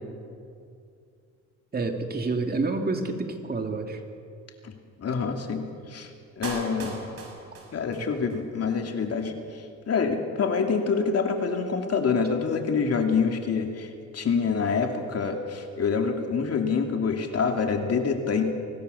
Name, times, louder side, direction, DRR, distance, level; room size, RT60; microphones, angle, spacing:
voice 1, 1.7-4.0, right 3 dB, 30° right, 4 dB, 2.6 m, -28 dB
voice 2, 4.6-6.1 6.4-7.0 7.7-18.4, left 5 dB, 55° left, 4 dB, 2.8 m, -26 dB
Clapping, 6.4-8.4 8.7-8.8, right 3 dB, 50° right, 5.9 m, -38 dB
24.0 x 18.0 x 7.1 m, 2.4 s
cardioid pair, 90°, 30 cm